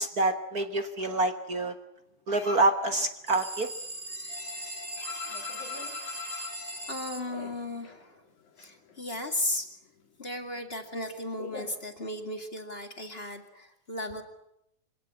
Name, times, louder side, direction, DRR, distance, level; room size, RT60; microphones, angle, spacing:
voice 1, 0.0-1.7 2.3-3.7, right 2 dB, 50° right, 8 dB, 1.1 m, -27 dB
sound 1, 2.4-2.8 3.2-8.0 8.3-9.4 9.6-12.5, left 5 dB, 75° left, 4.0 m, -43 dB
sound 2, 3.3-7.3, right 2 dB, 25° right, 2.8 m, -40 dB
voice 2, 6.9-8.2 8.6-9.7 10.2-14.2, left 1 dB, 20° left, 5 dB, 1.9 m, -35 dB
26.0 x 18.0 x 9.9 m, 0.81 s
omnidirectional pair, 3.6 m